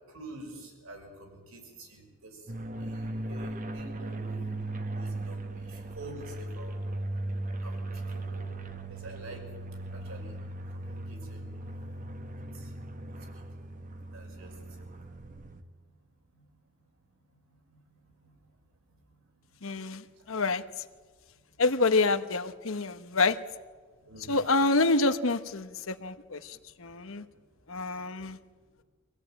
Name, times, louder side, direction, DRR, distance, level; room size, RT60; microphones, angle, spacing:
voice 1, 0.1-2.4 2.8-4.4 5.0-6.8 7.6-7.8 8.1-8.5 8.9-9.4 9.9-10.4 10.7-11.5 12.5-12.7 13.1-13.2 14.1-14.5 14.8-14.9 16.3-16.4 17.7-17.8 18.2-18.3 24.1-24.4, right 1 dB, 70° right, 2 dB, 5.8 m, -47 dB
sound 1, 2.5-15.6, right 2 dB, 35° right, 1.3 m, -38 dB
voice 2, 19.6-20.8 21.6-23.4 24.3-27.2 27.7-28.4, left 3 dB, 65° left, 10 dB, 1.1 m, -27 dB
25.0 x 16.5 x 8.9 m, 1.5 s
head